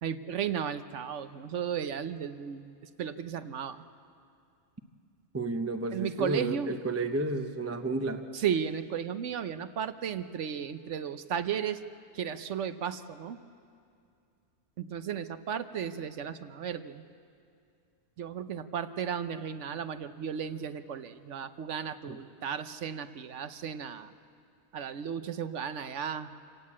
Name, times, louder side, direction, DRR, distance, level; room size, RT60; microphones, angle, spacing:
voice 1, 0.0-2.7 3.0-3.8 5.9-6.7 8.3-11.8 12.1-13.4 14.8-17.0 18.2-24.1 24.7-26.3, right 8 dB, 60° right, 11 dB, 0.9 m, -34 dB
voice 2, 5.3-8.2, right 2 dB, 15° right, 6 dB, 0.7 m, -31 dB
27.5 x 17.0 x 8.6 m, 2.4 s
omnidirectional pair, 1.6 m